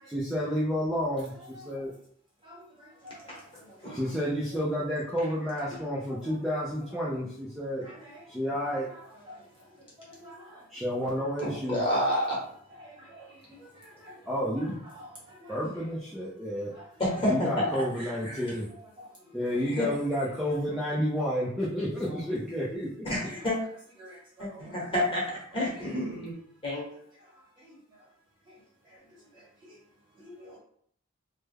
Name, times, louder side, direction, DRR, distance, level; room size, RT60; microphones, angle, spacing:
voice 1, 0.1-1.9 3.9-7.9 8.3-8.9 10.7-11.8 14.3-14.8 15.5-16.7 17.3-18.7 19.3-23.1, equal, ahead, -7 dB, 0.5 m, -30 dB
voice 2, 5.9-6.3 6.9-7.0 8.0-8.2 8.9-9.0 10.2-10.3 11.1-11.3 11.8-12.1 12.8-12.9 14.0-14.1 14.5-14.7 15.0-15.1 15.4-15.5 19.8-19.9 20.2-20.3 22.1-22.2 23.3-23.4 24.0-24.8 25.7-25.8 30.2-30.6, left 1 dB, 20° right, -6 dB, 1.4 m, -47 dB
voice 3, 11.4-12.4 17.0-18.4 19.7-19.9 23.0-23.6 24.4-26.3 26.6-26.9, left 1 dB, 25° left, -6 dB, 1.2 m, -29 dB
3.3 x 2.1 x 3.3 m, 0.63 s
head